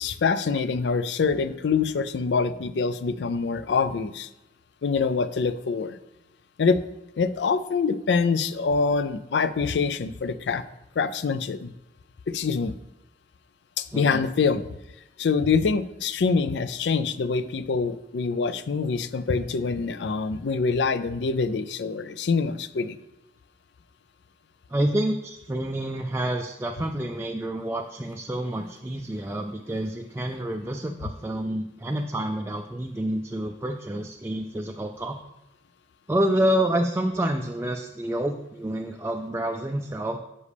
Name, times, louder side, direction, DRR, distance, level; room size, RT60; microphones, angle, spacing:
voice 1, 0.0-4.3 4.8-6.0 6.6-6.8 7.2-10.6 11.0-11.7 12.3-12.7 13.8-14.7 15.2-23.0, left 5 dB, 75° left, 15 dB, 0.4 m, -25 dB
voice 2, 13.9-14.2 24.7-35.2 36.1-40.2, right 1 dB, 15° right, 3 dB, 0.3 m, -28 dB
9.9 x 5.4 x 3.4 m, 0.91 s
head